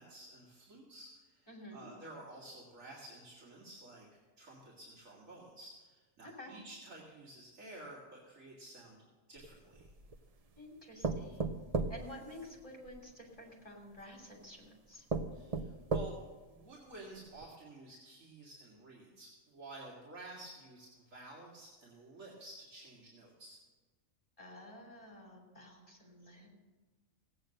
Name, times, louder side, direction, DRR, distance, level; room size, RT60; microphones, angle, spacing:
voice 1, 0.0-9.0 9.3-9.9 15.3-16.1 16.5-23.6, right 2 dB, 80° right, -5 dB, 2.7 m, -52 dB
voice 2, 1.5-1.9 6.2-6.5 10.6-11.5 11.9-15.0 24.4-26.5, equal, 25° left, 0 dB, 3.3 m, -51 dB
sound 1, 9.4-10.3 11.0-13.0 14.0-14.1 14.6-14.7 15.1-16.4 16.9-17.0 17.4-17.5, right 3 dB, 40° right, 0.5 m, -36 dB
16.0 x 8.9 x 6.6 m, 1.3 s
omnidirectional pair, 1.4 m